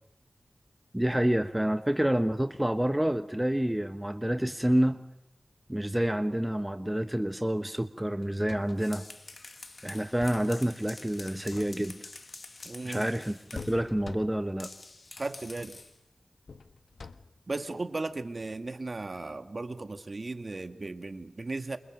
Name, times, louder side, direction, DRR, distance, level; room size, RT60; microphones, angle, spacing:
voice 1, 0.9-5.0 5.7-9.0 9.8-12.0 12.8-14.7, right 1 dB, 10° right, 9 dB, 1.1 m, -28 dB
sound 1, 8.2-9.0 9.9-10.6 11.3-12.1 13.5-14.6 15.5-15.8 16.5-17.5 19.2-19.3, left 4 dB, 80° left, 1.3 m, -46 dB
sound 2, 8.6-13.8 14.6-16.0, left 3 dB, 55° left, 2.0 m, -47 dB
voice 2, 12.6-13.1 15.2-15.8 17.5-21.8, right 2 dB, 50° right, 7 dB, 2.1 m, -36 dB
28.5 x 28.0 x 6.6 m, 0.78 s
cardioid pair, 50°, 0 cm